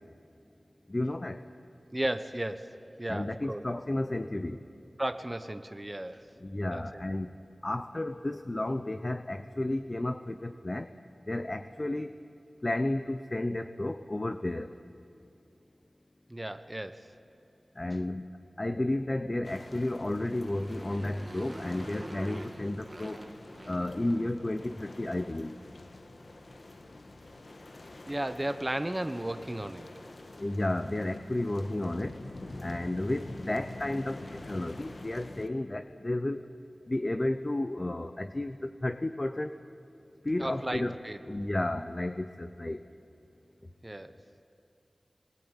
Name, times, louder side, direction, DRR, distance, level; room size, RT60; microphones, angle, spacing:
voice 1, 0.9-1.4 3.1-4.6 6.4-7.4 7.6-10.9 11.3-12.2 12.6-14.7 17.8-18.3 18.6-23.3 23.7-25.6 30.4-32.2 32.6-36.4 36.9-39.5 40.2-41.0 41.3-42.8, left 1 dB, 35° left, 9 dB, 0.8 m, -32 dB
voice 2, 1.9-2.7 3.0-3.6 5.0-6.2 6.7-7.0 16.3-17.1 28.0-29.9 40.4-41.2 43.8-44.1, right 1 dB, 20° right, 9 dB, 1.1 m, -34 dB
sound 1, 19.4-35.5, left 2 dB, 60° left, 1.5 m, -47 dB
Motorcycle, 20.1-24.6, right 1 dB, 35° right, 1.7 m, -46 dB
25.5 x 21.5 x 9.1 m, 2.6 s
wide cardioid pair, 55°, 0 cm